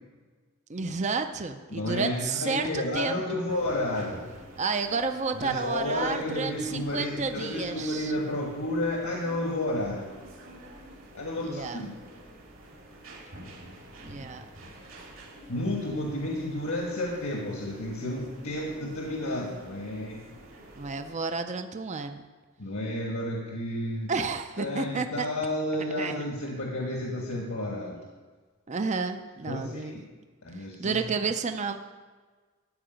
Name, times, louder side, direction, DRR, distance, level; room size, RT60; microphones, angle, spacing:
voice 1, 0.7-3.4 4.6-8.1 11.4-11.8 14.0-14.4 20.7-22.2 24.1-25.3 26.0-26.2 28.7-30.0 30.6-31.8, right 4 dB, 35° right, 8 dB, 0.6 m, -31 dB
voice 2, 1.7-4.2 5.3-10.1 11.1-12.0 15.5-20.2 22.6-24.1 24.6-28.0 29.4-30.0 30.4-31.0, left 1 dB, 80° left, -1 dB, 1.5 m, -31 dB
sound 1, 3.5-21.1, right 1 dB, 70° right, 2.9 m, -48 dB
13.5 x 4.8 x 9.1 m, 1.4 s
head